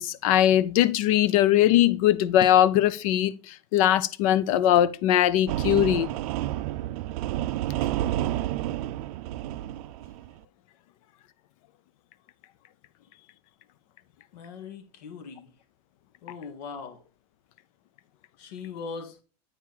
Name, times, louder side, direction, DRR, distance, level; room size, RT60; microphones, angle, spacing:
voice 1, 0.0-6.1, left 12 dB, 60° left, 0.7 m, -21 dB
sound 1, 5.5-10.3, right 14 dB, 65° right, 0.5 m, -30 dB
voice 2, 14.3-15.5 16.2-17.0 18.4-19.2, left 5 dB, 80° left, 1.9 m, -40 dB
8.8 x 4.7 x 4.0 m
supercardioid pair, 165°, 20 cm